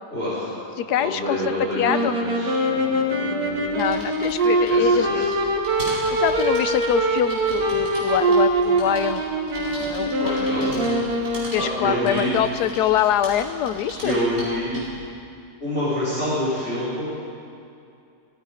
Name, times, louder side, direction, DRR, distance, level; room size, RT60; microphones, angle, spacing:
voice 1, 0.1-0.5 1.0-3.8 4.5-5.3 10.2-10.9 11.6-12.3 14.0-14.8 15.6-17.1, equal, 35° left, -10 dB, 5.0 m, -27 dB
voice 2, 0.8-2.2 3.7-5.3 6.2-9.2 9.9-10.4 11.5-14.2, left 10 dB, 70° left, 12 dB, 1.1 m, -24 dB
sound 1, 1.8-11.8, right 1 dB, 60° right, 1.9 m, -23 dB
sound 2, 3.5-15.1, equal, 30° right, 4.9 m, -39 dB
16.5 x 14.0 x 5.1 m, 2.5 s
omnidirectional pair, 1.9 m